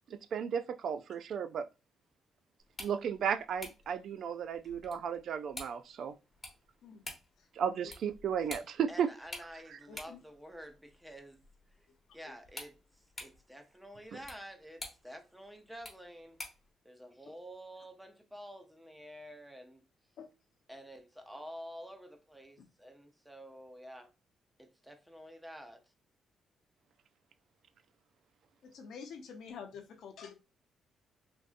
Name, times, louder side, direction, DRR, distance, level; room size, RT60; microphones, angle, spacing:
voice 1, 0.1-1.7 2.8-6.1 7.6-9.1, right 7 dB, 60° right, 0.3 m, -34 dB
sound 1, 2.6-16.7, left 2 dB, 20° left, 1.0 m, -51 dB
voice 2, 8.9-11.4 11.8-11.9 12.1-16.4 16.8-19.8 20.7-24.1 24.6-25.8, equal, 5° right, 0.6 m, -49 dB
voice 3, 9.9-10.2 12.2-12.3 20.2-20.3 28.6-30.3, left 6 dB, 70° left, 0.8 m, -47 dB
3.5 x 2.7 x 2.5 m
cardioid pair, 135°, 0 cm